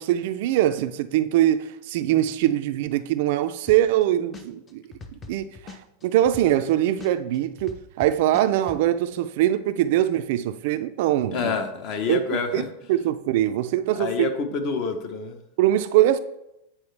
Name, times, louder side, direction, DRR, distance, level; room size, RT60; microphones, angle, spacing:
voice 1, 0.0-4.8 5.3-11.6 12.1-12.6 12.9-14.3 15.6-16.2, right 13 dB, 60° right, 0.4 m, -22 dB
sound 1, 3.7-4.0 4.3-6.7 7.0-8.8, left 3 dB, 20° left, 0.6 m, -41 dB
voice 2, 11.3-12.6 13.9-15.4, left 5 dB, 45° left, 0.9 m, -27 dB
8.7 x 4.4 x 3.3 m
supercardioid pair, 140°, 0 cm